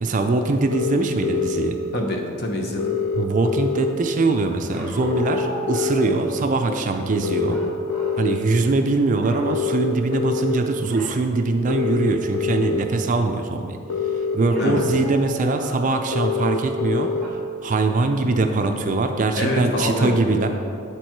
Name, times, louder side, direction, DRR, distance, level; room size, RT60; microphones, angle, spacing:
voice 1, 0.0-1.8 3.2-7.6 8.2-13.8 14.3-17.1 17.6-20.5, right 3 dB, 35° right, 5 dB, 0.4 m, -22 dB
sound 1, 0.7-1.7 2.8-3.9 5.0-6.1 7.2-8.4 9.5-10.6 11.7-12.8 13.9-15.0 16.1-17.2, left 6 dB, 85° left, 0.6 m, -25 dB
voice 2, 1.9-3.0 14.6-14.8 19.4-20.2, left 1 dB, 50° left, 1 dB, 0.9 m, -24 dB
sound 2, 4.7-6.8 7.5-8.2 8.5-8.8 9.2-9.5 10.9-11.2 11.7-11.8 12.1-12.6 14.5-16.6 17.2-17.3, left 1 dB, ahead, 1.4 m, -37 dB
8.6 x 4.5 x 4.5 m, 2.5 s
head